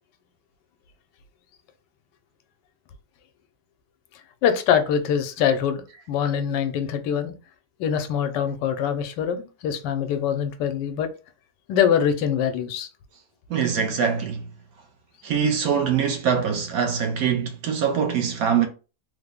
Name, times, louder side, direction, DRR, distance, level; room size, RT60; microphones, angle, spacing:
voice 1, 4.4-5.8 6.1-7.3 7.8-11.1 11.7-12.9, left 8 dB, 90° left, 1.2 m, -23 dB
voice 2, 13.5-14.5 15.2-18.7, right 7 dB, 70° right, 0.9 m, -23 dB
3.4 x 2.0 x 3.5 m
omnidirectional pair, 1.8 m